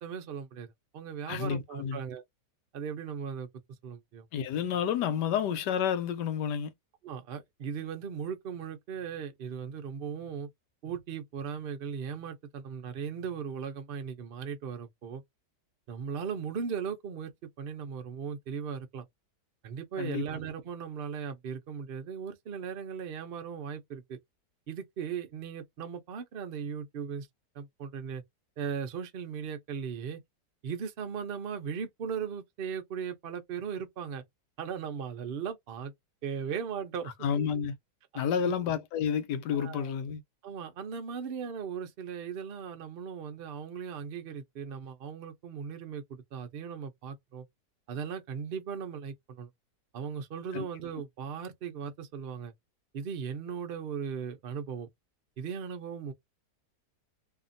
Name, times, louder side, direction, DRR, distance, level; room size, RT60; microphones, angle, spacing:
voice 1, 0.0-2.2 2.7-3.5 3.8-4.3 7.0-10.5 10.8-15.2 15.9-17.3 17.6-19.0 19.6-24.2 24.7-27.3 27.5-28.2 28.6-30.2 30.6-34.2 34.6-35.9 36.2-37.1 38.1-38.5 39.5-39.9 40.4-47.5 47.9-49.5 49.9-52.5 52.9-54.9 55.4-56.1, right 7 dB, 60° right, 0.6 m, -38 dB
voice 2, 1.3-2.0 4.3-6.7 20.0-20.3 37.2-37.7 38.1-40.2 50.5-50.6, left 8 dB, 80° left, 1.2 m, -30 dB
2.8 x 2.4 x 2.5 m
omnidirectional pair, 1.8 m